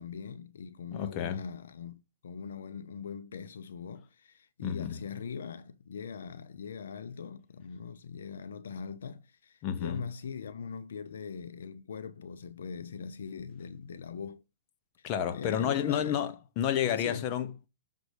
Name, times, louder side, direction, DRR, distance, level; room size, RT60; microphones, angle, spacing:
voice 1, 0.0-14.4 15.0-16.3 16.9-17.3, left 6 dB, 80° left, 0.6 m, -41 dB
voice 2, 0.9-1.4 4.6-5.0 9.6-10.0 15.0-17.7, left 9 dB, 35° left, 0.9 m, -31 dB
6.4 x 3.8 x 4.9 m
hypercardioid pair, 140°, 0 cm